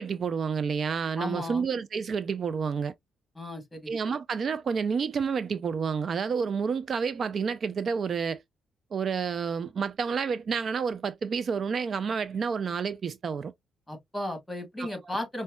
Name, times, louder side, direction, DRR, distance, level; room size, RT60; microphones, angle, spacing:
voice 1, 0.0-2.9 3.9-8.4 8.9-13.5 14.8-15.2, right 6 dB, 50° right, 0.3 m, -29 dB
voice 2, 1.2-1.6 3.3-3.9 13.9-15.4, left 1 dB, 10° left, 1.6 m, -35 dB
5.2 x 2.1 x 2.3 m
cardioid pair, 90°, 0 cm